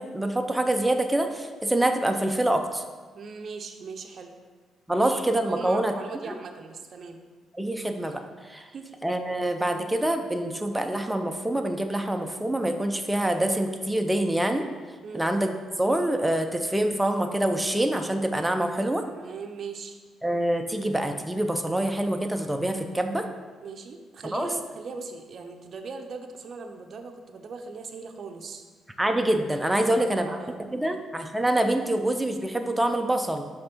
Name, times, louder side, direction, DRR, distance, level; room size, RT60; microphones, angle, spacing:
voice 1, 0.0-2.8 4.9-6.0 6.3-6.4 7.6-8.2 8.5-8.6 9.0-14.6 15.1-15.5 15.8-19.0 20.2-23.2 24.2-24.5 29.0-30.3 30.7-33.5, right 1 dB, 10° right, 5 dB, 0.5 m, -25 dB
voice 2, 3.1-4.3 5.0-7.2 8.7-8.9 15.0-15.3 19.0-20.0 23.6-28.7 29.8-31.0, right 4 dB, 55° right, 4 dB, 0.6 m, -39 dB
5.7 x 3.5 x 5.2 m, 1.4 s
cardioid pair, 90°, 0 cm